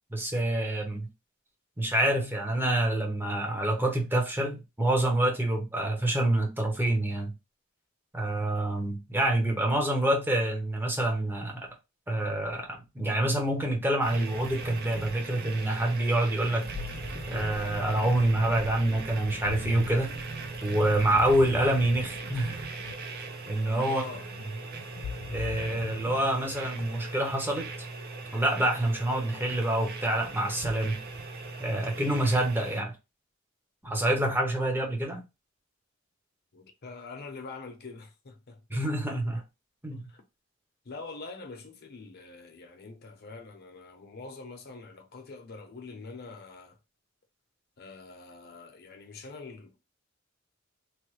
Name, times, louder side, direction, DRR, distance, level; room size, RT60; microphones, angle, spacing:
voice 1, 0.1-1.1 1.8-7.3 8.1-11.7 12.1-16.6 17.3-20.2 20.6-22.6 23.5-24.0 25.3-27.7 28.3-31.0 31.6-32.9 33.8-35.2 38.7-39.4 39.8-40.0, right 1 dB, 10° right, 0.8 m, -27 dB
sound 1, 14.0-32.8, right 3 dB, 50° right, 0.5 m, -39 dB
Ocean, 16.4-27.1, left 6 dB, 90° left, 0.3 m, -43 dB
voice 2, 23.8-24.2 36.5-38.8 39.9-40.2 40.8-46.8 47.8-49.8, left 3 dB, 55° left, 0.7 m, -44 dB
3.1 x 2.2 x 3.1 m
head